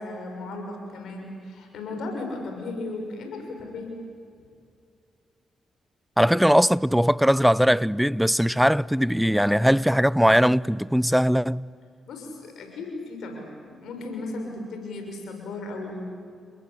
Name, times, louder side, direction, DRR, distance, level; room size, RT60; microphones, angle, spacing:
voice 1, 0.0-4.0 12.1-16.1, left 2 dB, 75° left, 6.6 m, -35 dB
voice 2, 6.2-11.7, equal, ahead, 0.6 m, -20 dB
29.5 x 21.0 x 8.6 m
supercardioid pair, 50°, 0 cm